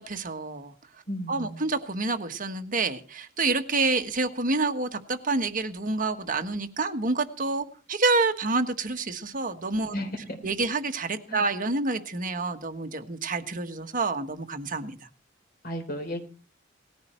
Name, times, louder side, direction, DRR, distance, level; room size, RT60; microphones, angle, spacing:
voice 1, 0.1-0.7 1.3-9.9 10.4-15.0, right 3 dB, 45° right, 7 dB, 1.4 m, -28 dB
voice 2, 1.1-1.6 9.9-10.4 11.3-11.4 15.6-16.2, equal, 50° left, 5 dB, 4.1 m, -34 dB
19.0 x 14.5 x 4.5 m, 0.37 s
head